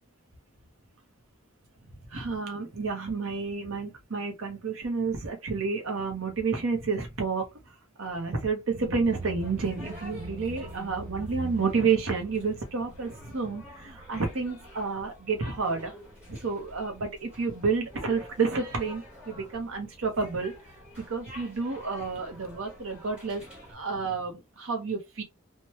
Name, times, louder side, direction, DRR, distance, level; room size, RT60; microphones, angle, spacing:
voice 1, 2.1-15.9 16.3-20.5 21.1-23.4 23.7-25.2, right 4 dB, 80° right, 0.8 m, -30 dB
sound 1, 8.7-14.7, right 3 dB, 55° right, 0.5 m, -42 dB
sound 2, 9.0-23.7, left 1 dB, 5° right, 1.1 m, -49 dB
3.1 x 2.2 x 2.9 m
head